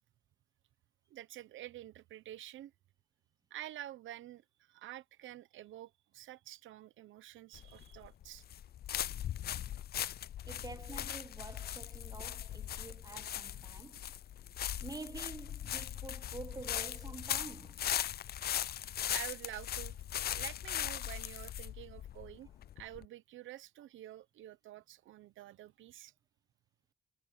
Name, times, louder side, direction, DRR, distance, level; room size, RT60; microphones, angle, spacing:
voice 1, 1.1-2.7 3.5-8.4 19.1-20.0 20.3-22.5 22.8-26.1, right 13 dB, 75° right, 1.0 m, -49 dB
sound 1, 7.5-23.1, left 11 dB, 50° left, 0.5 m, -39 dB
voice 2, 10.4-14.1 14.8-17.9, right 3 dB, 20° right, 0.8 m, -48 dB
cardioid pair, 90°, 20 cm